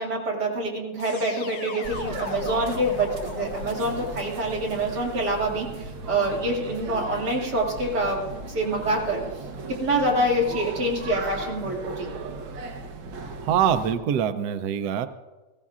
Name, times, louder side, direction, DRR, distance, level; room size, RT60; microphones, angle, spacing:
voice 1, 0.0-8.3 8.5-9.2 9.7-12.1, right 1 dB, 50° right, -3 dB, 2.8 m, -26 dB
sound 1, 1.0-5.9, left 6 dB, 75° left, 1.8 m, -38 dB
sound 2, 1.8-13.9, right 3 dB, 65° right, 1.6 m, -37 dB
voice 2, 13.4-15.1, right 9 dB, 85° right, 10 dB, 0.8 m, -24 dB
20.0 x 15.5 x 2.4 m, 1.2 s
omnidirectional pair, 2.4 m